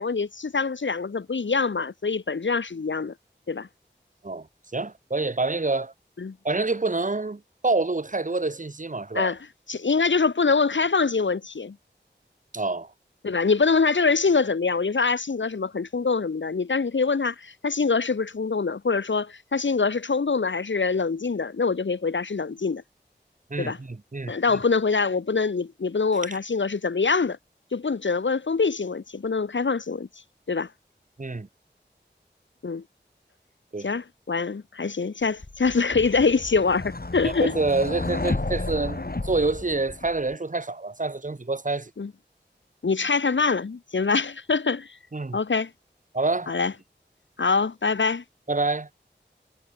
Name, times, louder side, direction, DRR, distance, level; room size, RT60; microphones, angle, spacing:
voice 1, 0.0-3.1 3.5-3.7 6.2-6.3 9.1-9.4 9.7-11.7 13.2-22.8 23.6-23.8 24.3-27.4 27.7-30.1 30.5-30.7 32.6-32.8 33.8-37.5 42.0-42.1 42.8-44.9 45.3-45.7 46.5-46.7 47.4-48.2, left 4 dB, 80° left, 0.9 m, -24 dB
voice 2, 4.7-5.9 6.4-9.3 12.5-12.9 23.5-24.4 31.2-31.5 33.7-33.9 37.2-41.9 45.1-45.4 46.1-46.5 48.5-48.9, right 3 dB, 45° right, 1.2 m, -27 dB
sound 1, 35.4-40.3, left 2 dB, 55° left, 3.7 m, -32 dB
wide cardioid pair, 50°, 19 cm